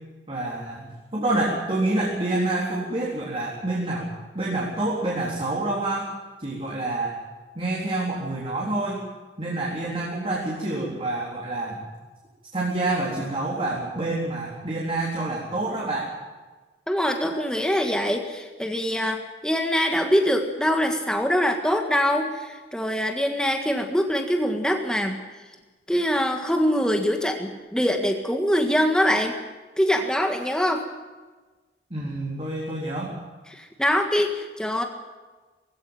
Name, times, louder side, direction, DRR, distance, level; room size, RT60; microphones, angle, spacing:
voice 1, 0.3-4.1 4.3-6.1 6.4-7.2 7.6-9.0 9.4-11.8 12.5-16.1 31.9-33.1, right 2 dB, 30° right, -4 dB, 3.8 m, -27 dB
voice 2, 16.9-25.2 25.9-29.4 29.8-30.8 33.5-34.8, equal, 5° left, 3 dB, 1.7 m, -23 dB
19.5 x 16.5 x 9.3 m, 1.3 s
head